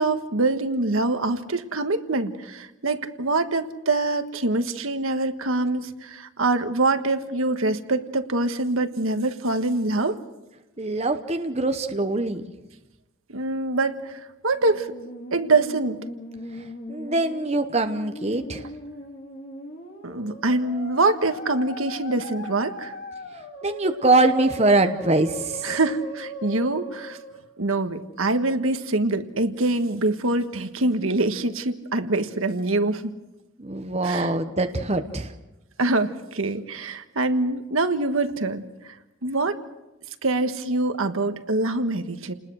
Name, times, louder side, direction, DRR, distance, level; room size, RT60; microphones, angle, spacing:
voice 1, 0.0-10.2 13.3-14.9 15.3-16.0 20.0-22.9 25.6-27.2 27.6-33.1 34.0-34.3 35.8-39.0 39.2-39.6 40.2-42.3, right 2 dB, 75° right, 8 dB, 1.5 m, -24 dB
voice 2, 10.8-12.4 16.9-18.6 23.6-25.8 33.6-35.3, right 2 dB, 30° right, 6 dB, 1.0 m, -23 dB
Musical instrument, 14.5-27.5, equal, 45° left, 3.1 m, -39 dB
29.5 x 20.0 x 6.4 m, 1.0 s
head